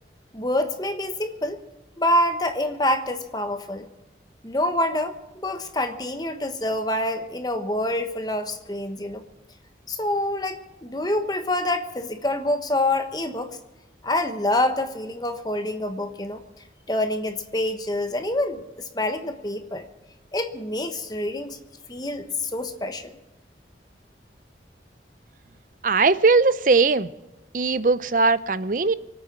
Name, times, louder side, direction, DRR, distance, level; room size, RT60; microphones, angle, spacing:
voice 1, 0.3-1.6 2.0-3.9 4.4-9.2 9.9-13.6 14.0-16.4 16.9-19.9 20.3-21.6 21.9-23.1, left 1 dB, 20° left, 7 dB, 1.2 m, -26 dB
voice 2, 25.8-27.1 27.5-28.9, right 4 dB, 45° right, 15 dB, 0.6 m, -19 dB
24.5 x 9.1 x 6.1 m, 1.1 s
head